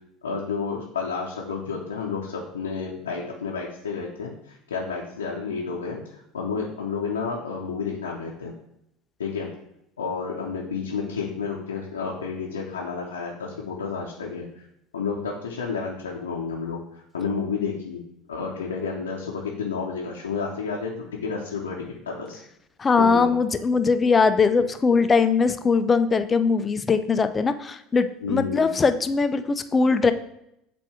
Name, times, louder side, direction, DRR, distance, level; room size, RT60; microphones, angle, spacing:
voice 1, 0.2-8.5 9.2-9.5 10.0-14.5 14.9-16.8 17.1-18.0 18.3-22.4 23.0-23.4 28.2-28.7, left 5 dB, 85° left, -3 dB, 0.7 m, -30 dB
voice 2, 22.8-30.1, left 4 dB, 25° left, 10 dB, 0.5 m, -21 dB
7.3 x 2.6 x 4.9 m, 0.80 s
hypercardioid pair, 70°, 0 cm